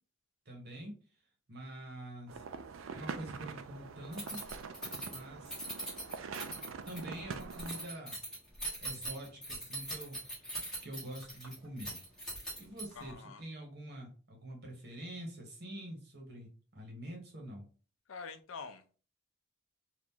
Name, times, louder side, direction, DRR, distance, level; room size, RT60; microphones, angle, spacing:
voice 1, 0.4-0.9 1.5-2.4 2.9-4.4 5.1-5.6 6.8-8.2 8.8-10.4 10.8-12.0 12.6-17.7, right 1 dB, 55° right, 0 dB, 1.3 m, -46 dB
sound 1, 2.3-7.9, right 5 dB, 80° right, 0.4 m, -44 dB
Keys jangling, 4.1-13.1, right 1 dB, 5° left, 1.3 m, -42 dB
voice 2, 12.9-13.4 18.1-18.8, left 5 dB, 80° left, 8 dB, 0.5 m, -45 dB
2.9 x 2.5 x 3.6 m, 0.37 s
head